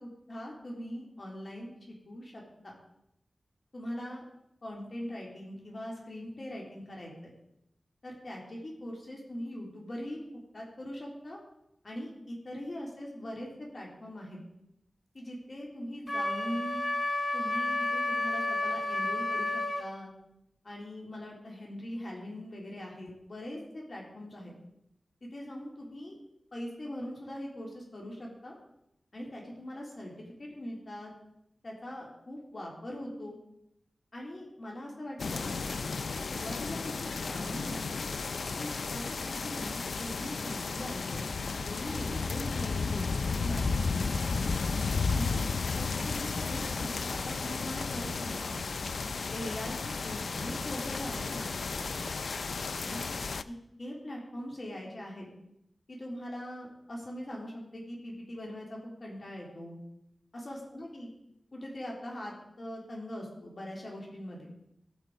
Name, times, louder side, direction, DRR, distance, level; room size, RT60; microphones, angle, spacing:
voice 1, 0.0-2.7 3.7-4.3 4.6-7.3 8.0-10.2 10.5-11.4 11.8-14.4 15.1-16.8 17.3-20.1 20.6-24.5 25.2-26.2 26.5-28.6 29.1-31.1 31.6-33.4 34.1-35.6 36.1-37.8 38.5-41.2 41.6-44.1 45.1-45.5 45.7-48.6 49.3-52.0 52.8-53.1 53.5-55.3 55.9-59.8 60.4-61.1 61.5-64.5, left 1 dB, 55° left, -2 dB, 3.6 m, -41 dB
Wind instrument woodwind instrument, 16.1-19.9, left 2 dB, 40° left, 2.9 m, -31 dB
sound 1, 35.2-53.4, left 4 dB, 80° left, 0.5 m, -33 dB
17.0 x 6.0 x 6.7 m, 0.81 s
wide cardioid pair, 55°, 0 cm